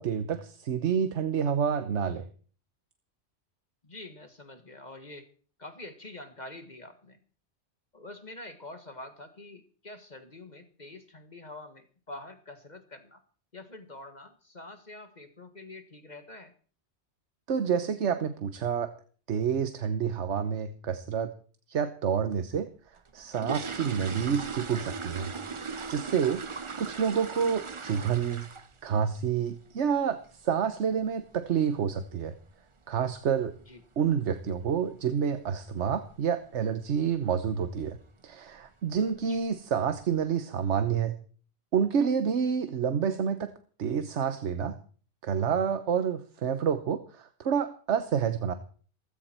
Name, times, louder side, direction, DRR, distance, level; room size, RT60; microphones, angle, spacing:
voice 1, 0.0-2.2 17.5-18.9 19.3-21.3 21.7-22.7 23.1-25.3 25.9-26.4 26.8-28.4 28.8-32.3 32.9-33.5 34.0-38.0 38.2-41.2 41.7-43.5 43.8-44.8 45.2-48.5, right 7 dB, 80° right, 10 dB, 1.3 m, -28 dB
voice 2, 3.8-5.3 5.6-7.2 7.9-13.2 13.5-16.5 26.9-27.0 33.7-33.8 39.3-39.4, left 2 dB, 40° left, 8 dB, 1.7 m, -46 dB
sound 1, 23.0-28.9 29.1-29.4 29.8-29.9 30.2-30.4 30.8-31.0 31.2-31.3 31.9-32.0 32.3-32.4 33.0-33.3 33.5-33.6 34.0-34.3 34.6-34.7 35.1-35.2 35.8-36.1 36.5-36.8 37.1-37.2 37.7-37.8 38.5-38.7 39.1-39.6 40.0-40.1, right 5 dB, 30° right, 0.8 m, -38 dB
18.0 x 15.0 x 4.5 m, 0.43 s
omnidirectional pair, 1.2 m